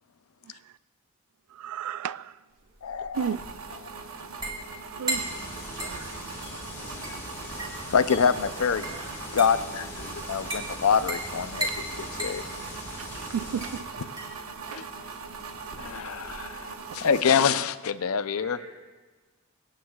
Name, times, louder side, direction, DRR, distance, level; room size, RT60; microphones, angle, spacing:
voice 1, 1.5-2.4 3.1-3.5 5.0-5.3 5.8-6.4 13.1-14.0 14.7-14.9, right 8 dB, 85° right, 0.3 m, -34 dB
sound 1, 2.6-16.5, right 1 dB, 20° right, 2.3 m, -38 dB
voice 2, 2.8-3.2 7.9-8.8 9.3-11.9 12.2-12.4 14.7-14.8 15.8-18.6, left 6 dB, 75° left, 0.5 m, -25 dB
sound 2, 3.1-17.2, right 5 dB, 70° right, 0.9 m, -41 dB
sound 3, 5.1-13.8, left 1 dB, 10° left, 1.7 m, -41 dB
voice 3, 8.5-9.1 18.4-18.7, right 2 dB, 45° right, 3.7 m, -44 dB
25.0 x 9.0 x 2.3 m
head